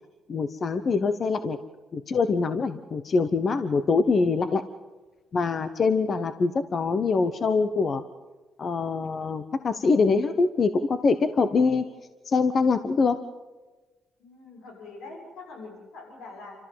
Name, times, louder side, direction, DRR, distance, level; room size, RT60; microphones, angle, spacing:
voice 1, 0.3-1.6 1.9-4.6 5.3-8.0 8.6-11.8 12.2-13.2, left 4 dB, 45° left, 10 dB, 0.9 m, -24 dB
voice 2, 14.2-16.6, left 3 dB, 85° left, 0 dB, 6.9 m, -43 dB
27.0 x 13.5 x 7.5 m, 1.2 s
cardioid pair, 90°, 0 cm